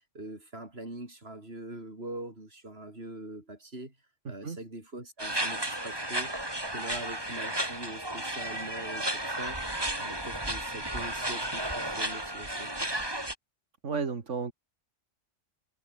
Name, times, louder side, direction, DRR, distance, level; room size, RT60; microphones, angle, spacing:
voice 1, 0.0-4.0 4.3-6.3 6.7-13.0, right 2 dB, 55° right, 6.4 m, -43 dB
voice 2, 4.3-4.6 13.8-14.5, right 5 dB, 80° right, 2.3 m, -33 dB
sound 1, 5.2-13.4, right 1 dB, 20° right, 3.5 m, -33 dB
omnidirectional pair, 1.2 m